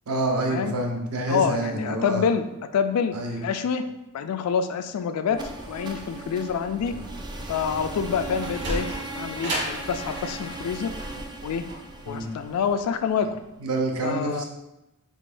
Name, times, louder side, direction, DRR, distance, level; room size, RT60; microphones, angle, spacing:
voice 1, 0.1-2.2 3.1-3.4 12.1-12.3 13.6-14.4, right 2 dB, 70° right, 2 dB, 0.6 m, -27 dB
voice 2, 1.3-2.5 2.7-3.1 3.4-3.8 4.1-5.4 5.7-6.9 7.5-8.9 9.2-10.9 11.4-11.6 12.1-13.3 14.0-14.4, left 6 dB, 70° left, 10 dB, 0.3 m, -26 dB
sound 1, 5.3-13.2, right 2 dB, 20° right, 0.4 m, -37 dB
Sliding door, 8.4-13.3, right 1 dB, 50° right, 1.3 m, -34 dB
3.8 x 3.5 x 2.5 m, 0.92 s
head